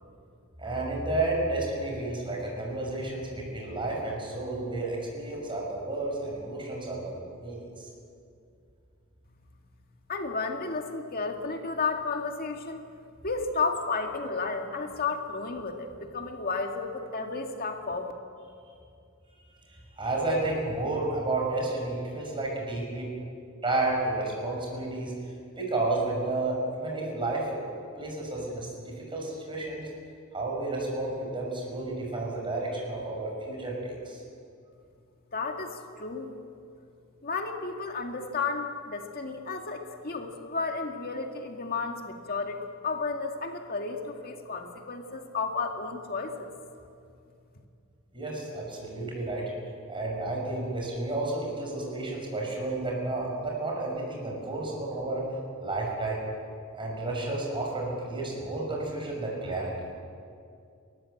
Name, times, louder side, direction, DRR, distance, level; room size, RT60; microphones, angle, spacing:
voice 1, 0.6-7.9 20.0-23.1 23.6-25.1 25.6-27.7 28.0-29.9 30.3-34.2 48.1-49.4 49.9-55.2 55.6-56.2 56.7-59.7, right 2 dB, 25° right, -2 dB, 6.2 m, -31 dB
voice 2, 10.1-12.8 13.2-18.1 35.3-36.3 37.2-46.5, left 4 dB, 45° left, 3 dB, 2.1 m, -32 dB
30.0 x 14.0 x 7.9 m, 2.4 s
head